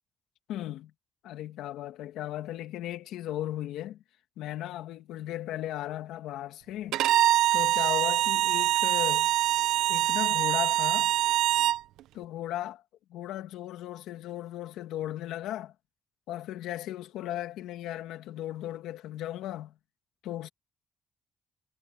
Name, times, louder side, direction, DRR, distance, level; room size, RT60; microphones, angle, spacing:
voice 1, 0.5-0.9 1.2-4.0 4.4-7.0 7.5-9.3 9.9-11.1 12.1-12.8 13.1-15.7 16.3-19.7 20.2-20.5, left 13 dB, 90° left, 2.2 m, -36 dB
Bowed string instrument, 6.9-11.8, right 13 dB, 90° right, 0.6 m, -24 dB
cardioid pair, 90°, 0 cm